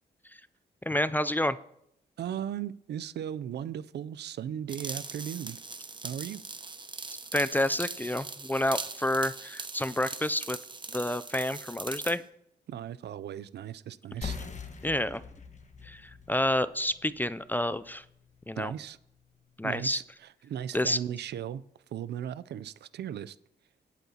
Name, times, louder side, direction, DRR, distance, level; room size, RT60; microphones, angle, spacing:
voice 1, 0.9-1.6 7.3-10.6 10.9-12.2 14.8-15.2 15.9-16.0 16.3-18.0 18.5-18.7 19.6-20.0 20.7-21.0, left 1 dB, 10° left, 0.3 m, -29 dB
voice 2, 2.2-5.6 6.0-6.4 12.7-14.4 18.6-19.0 19.6-21.6 21.9-23.4, right 10 dB, 70° right, 0.4 m, -37 dB
sound 1, 4.7-12.2, right 3 dB, 25° right, 0.8 m, -40 dB
sound 2, 14.2-19.3, left 5 dB, 40° left, 1.4 m, -44 dB
18.0 x 8.2 x 2.8 m
cardioid pair, 80°, 18 cm